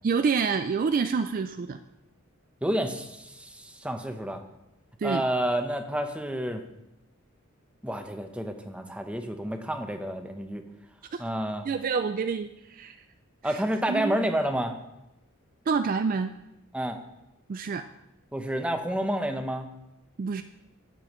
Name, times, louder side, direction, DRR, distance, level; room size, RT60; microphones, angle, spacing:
voice 1, 0.0-1.8 5.0-5.2 11.1-11.2 11.6-13.0 13.4-13.6 13.9-14.2 15.7-16.3 17.5-17.8 20.2-20.4, right 5 dB, 40° right, 9 dB, 0.3 m, -27 dB
voice 2, 2.6-4.4 5.0-6.6 7.8-10.6 11.2-11.7 13.4-14.7 16.7-17.0 18.3-19.7, right 1 dB, 5° right, 5 dB, 0.8 m, -29 dB
16.5 x 6.9 x 3.1 m, 0.91 s
head